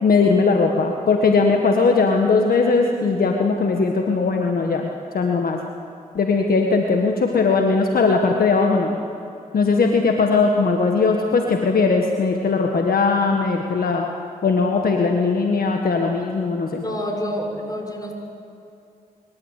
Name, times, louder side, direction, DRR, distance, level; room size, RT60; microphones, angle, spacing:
voice 1, 0.0-4.9 5.1-5.6 6.1-9.0 9.5-14.1 14.4-16.8, left 4 dB, 70° left, 2 dB, 1.6 m, -19 dB
voice 2, 16.8-18.1, equal, 25° left, 2 dB, 6.0 m, -28 dB
25.5 x 13.0 x 8.3 m, 2.6 s
supercardioid pair, 45°, 16 cm